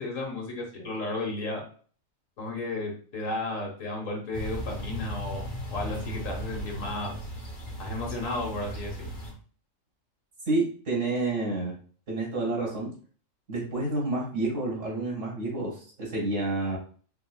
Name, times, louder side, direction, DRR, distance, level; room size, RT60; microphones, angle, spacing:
voice 1, 0.0-1.6 2.4-7.3 7.8-9.1, left 2 dB, 75° left, 0 dB, 1.6 m, -33 dB
sound 1, 4.3-9.3, equal, 40° left, 1.1 m, -36 dB
voice 2, 10.5-11.7 12.1-12.9 13.5-16.8, right 2 dB, 65° right, -2 dB, 2.1 m, -29 dB
4.6 x 3.7 x 2.2 m, 0.43 s
omnidirectional pair, 1.4 m